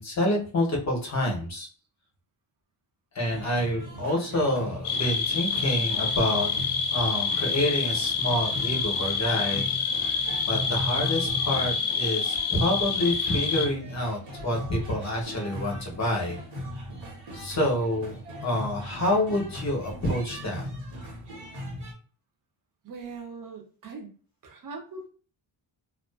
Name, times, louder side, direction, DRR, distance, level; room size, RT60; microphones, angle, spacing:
voice 1, 0.0-1.7 3.1-6.5 6.9-9.6 10.5-16.4 17.3-20.6, left 1 dB, 35° left, -1 dB, 0.8 m, -28 dB
sound 1, 3.2-21.9, equal, 85° right, 1.2 m, -39 dB
sound 2, 4.8-13.7, left 5 dB, 80° left, 0.6 m, -27 dB
voice 2, 22.8-24.1 24.4-25.1, right 4 dB, 40° right, 3 dB, 0.6 m, -41 dB
2.4 x 2.3 x 2.2 m, 0.40 s
wide cardioid pair, 160°, 49 cm